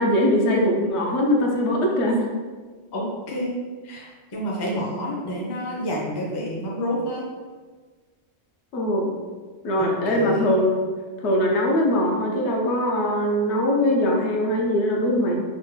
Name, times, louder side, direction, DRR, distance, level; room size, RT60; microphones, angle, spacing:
voice 1, 0.0-2.3 8.7-9.1 9.6-10.8 11.2-15.4, left 1 dB, 75° left, -1 dB, 0.9 m, -21 dB
voice 2, 2.9-7.3 9.8-10.5, equal, 30° left, -3 dB, 0.4 m, -29 dB
3.3 x 2.1 x 3.1 m, 1.4 s
omnidirectional pair, 1.2 m